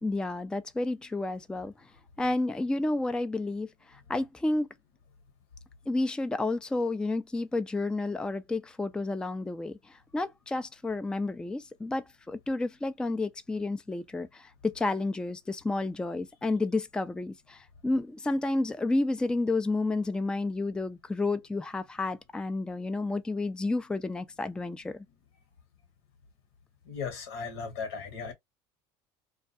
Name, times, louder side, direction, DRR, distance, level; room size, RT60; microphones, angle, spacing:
voice 1, 0.0-1.9 2.2-4.7 5.9-25.0, left 2 dB, 5° left, 0.3 m, -31 dB
voice 2, 26.8-28.3, left 5 dB, 85° left, 1.0 m, -36 dB
2.3 x 2.2 x 2.6 m
supercardioid pair, 85°, 13 cm